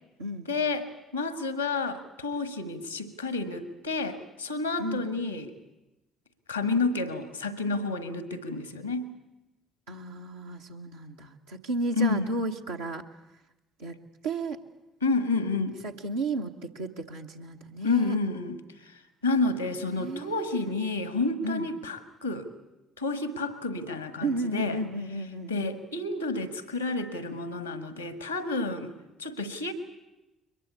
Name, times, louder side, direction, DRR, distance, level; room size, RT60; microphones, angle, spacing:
voice 1, 0.5-0.9 1.1-5.5 6.5-9.1 12.0-12.3 15.0-15.8 17.8-22.5 23.0-24.8 25.5-28.9 29.2-29.7, left 3 dB, 90° left, 12 dB, 1.4 m, -30 dB
voice 2, 4.8-5.2 9.9-13.0 13.8-14.0 14.2-14.6 15.8-18.2 19.9-20.5 21.4-21.7 24.2-25.5, right 2 dB, 75° right, 0 dB, 1.0 m, -33 dB
22.5 x 20.5 x 8.4 m, 0.99 s
figure-of-eight pair, 50°, 0 cm